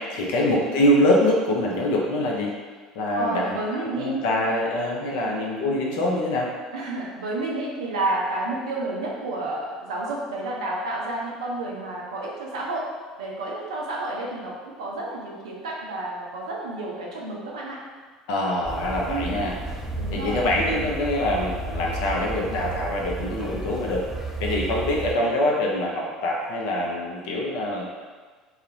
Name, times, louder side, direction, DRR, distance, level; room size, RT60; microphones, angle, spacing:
voice 1, 0.1-2.5 2.9-6.5 18.3-19.6 20.1-24.0 24.4-27.8, left 1 dB, 55° left, -2 dB, 0.4 m, -24 dB
voice 2, 3.1-4.4 5.2-5.4 6.7-12.9 13.2-17.8 19.1-19.4 19.9-20.5, right 2 dB, 70° right, -3 dB, 0.4 m, -30 dB
sound 1, 18.6-25.1, right 2 dB, 10° right, 0.4 m, -32 dB
2.3 x 2.0 x 2.7 m, 1.5 s
figure-of-eight pair, 65°, 3 cm